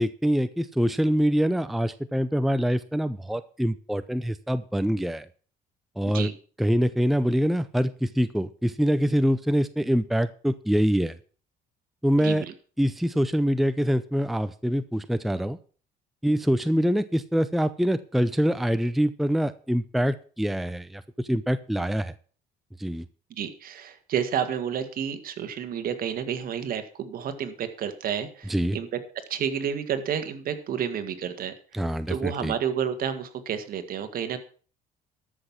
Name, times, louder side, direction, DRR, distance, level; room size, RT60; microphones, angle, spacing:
voice 1, 0.0-5.3 6.0-6.3 6.6-11.2 12.0-12.4 12.8-15.6 16.2-22.1 22.8-23.1 28.5-28.8 31.7-32.5, equal, ahead, 12 dB, 0.6 m, -25 dB
voice 2, 12.2-12.5 23.4-28.9 29.3-31.8 32.1-34.4, right 8 dB, 60° right, 9 dB, 1.9 m, -30 dB
13.0 x 6.3 x 7.2 m, 0.41 s
cardioid pair, 110°, 17 cm